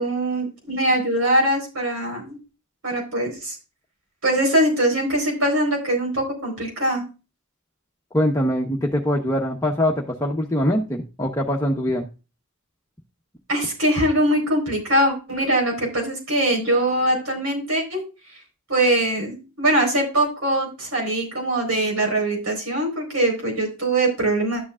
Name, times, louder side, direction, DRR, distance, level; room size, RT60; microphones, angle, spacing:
voice 1, 0.0-2.4 2.8-3.6 4.2-7.0 13.5-18.0 18.7-24.7, right 1 dB, 80° right, 1 dB, 4.4 m, -22 dB
voice 2, 8.1-12.0, equal, 15° left, -1 dB, 1.0 m, -23 dB
12.0 x 8.1 x 2.4 m, 0.31 s
head